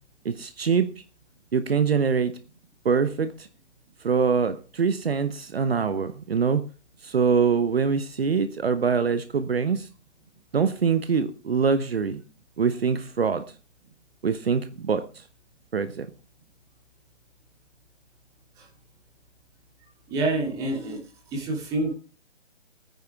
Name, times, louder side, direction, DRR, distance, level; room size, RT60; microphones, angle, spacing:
voice 1, 0.2-0.9 1.5-2.3 2.8-3.3 4.0-6.6 7.0-9.8 10.5-12.2 12.6-13.4 14.2-15.0 15.7-16.1, right 6 dB, 60° right, 1.1 m, -24 dB
voice 2, 20.1-21.0 21.3-21.9, right 2 dB, 10° right, 2.8 m, -27 dB
18.5 x 9.5 x 3.6 m
hypercardioid pair, 165°, 35 cm